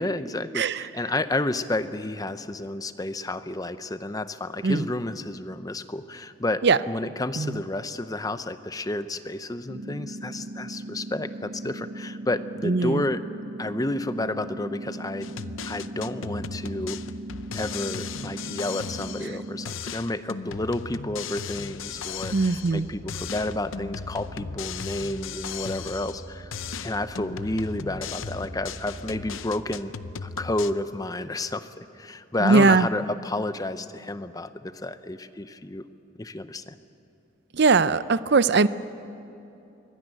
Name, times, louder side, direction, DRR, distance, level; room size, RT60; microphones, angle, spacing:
voice 1, 0.0-13.2 13.6-15.3 15.6-17.0 17.5-26.5 26.8-29.9 30.2-35.9 36.2-36.7, left 2 dB, 20° left, 11 dB, 0.7 m, -31 dB
sound 1, 9.7-19.7, right 1 dB, 75° right, 1.1 m, -38 dB
voice 2, 12.7-13.0 22.3-22.8 32.4-32.9 37.6-38.7, right 4 dB, 55° right, 15 dB, 0.6 m, -20 dB
sound 2, 15.2-19.4 19.7-22.8 23.1-26.3 26.5-30.7, left 6 dB, 80° left, 0.7 m, -37 dB
sound 3, 21.7-29.4, right 1 dB, 50° left, 5.9 m, -44 dB
24.0 x 16.0 x 9.1 m, 2.8 s
head